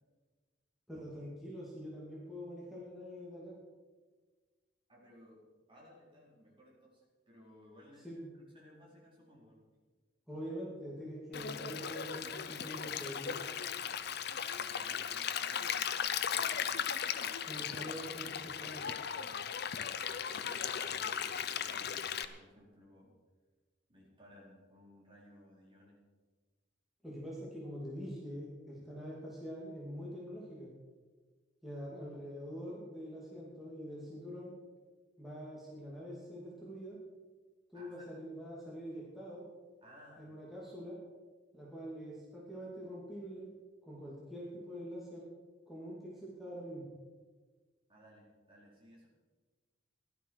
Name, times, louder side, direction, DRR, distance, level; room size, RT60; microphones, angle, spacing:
voice 1, 0.9-3.5 8.0-8.3 10.3-13.4 17.4-18.8 27.0-30.7 31.6-34.5 35.2-37.0 37.7-39.5 40.2-41.0 41.5-43.5 43.8-45.3 45.7-46.8, equal, ahead, -6 dB, 2.7 m, -45 dB
voice 2, 4.9-5.4 5.7-8.3 8.5-9.6 14.6-16.7 19.8-23.1 23.9-26.0 37.7-38.1 39.8-40.3 47.9-49.1, equal, 30° right, -4 dB, 4.5 m, -59 dB
Stream, 11.3-22.3, left 8 dB, 60° left, 0.7 m, -37 dB
16.5 x 12.0 x 4.8 m, 1.4 s
head